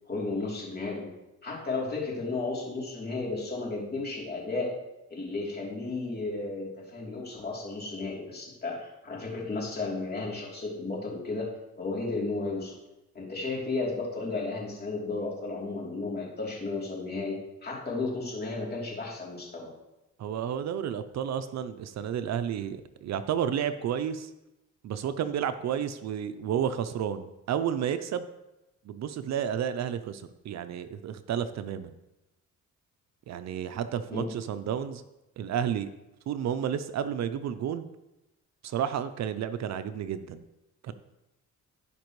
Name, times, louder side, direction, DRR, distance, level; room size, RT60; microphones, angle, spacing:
voice 1, 0.1-1.1 1.4-4.7 5.1-11.5 11.8-12.8 13.1-19.7 34.1-34.3, left 3 dB, 35° left, -4 dB, 3.2 m, -33 dB
voice 2, 20.2-24.3 24.8-28.3 28.9-31.9 33.3-35.0 35.4-35.9 36.3-37.9 38.6-40.4 40.8-40.9, right 9 dB, 65° right, 11 dB, 0.6 m, -31 dB
15.5 x 5.2 x 3.1 m, 0.95 s
cardioid pair, 90°, 30 cm